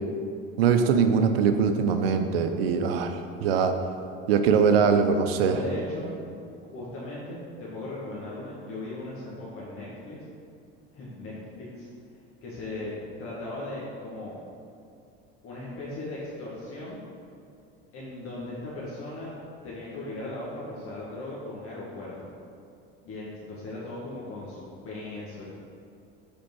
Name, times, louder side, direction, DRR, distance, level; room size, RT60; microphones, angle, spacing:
voice 1, 0.6-3.7 4.3-5.6, right 6 dB, 85° right, 7 dB, 0.6 m, -22 dB
voice 2, 5.3-10.2 10.9-11.9 12.4-14.4 15.4-17.0 17.9-19.3 19.6-22.3 23.0-25.4, left 2 dB, 50° left, -7 dB, 1.7 m, -38 dB
5.1 x 4.5 x 6.1 m, 2.5 s
hypercardioid pair, 80°, 29 cm